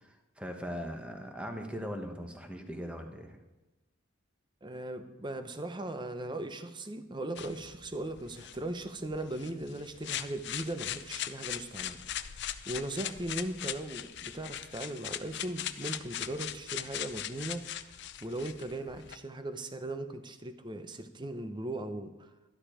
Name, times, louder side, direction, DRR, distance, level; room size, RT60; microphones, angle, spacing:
voice 1, 0.0-3.4, equal, 5° right, 4 dB, 1.3 m, -40 dB
voice 2, 4.6-12.0 12.2-17.6 18.2-22.3, right 1 dB, 20° right, 9 dB, 0.8 m, -38 dB
sound 1, 7.4-19.2, left 11 dB, 55° left, 0.6 m, -40 dB
12.5 x 12.0 x 5.0 m, 1.1 s
head